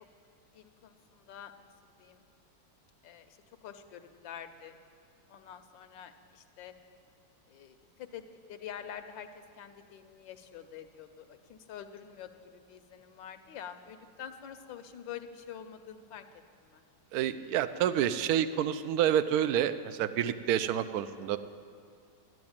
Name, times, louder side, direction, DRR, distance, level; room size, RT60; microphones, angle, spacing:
voice 1, 0.5-1.7 2.0-2.2 3.0-3.3 3.6-4.7 5.3-6.7 7.5-16.2 16.6-16.8, left 9 dB, 80° left, 9 dB, 1.5 m, -47 dB
voice 2, 17.1-21.4, right 10 dB, 70° right, 13 dB, 0.9 m, -28 dB
12.5 x 10.5 x 8.8 m, 2.3 s
omnidirectional pair, 2.0 m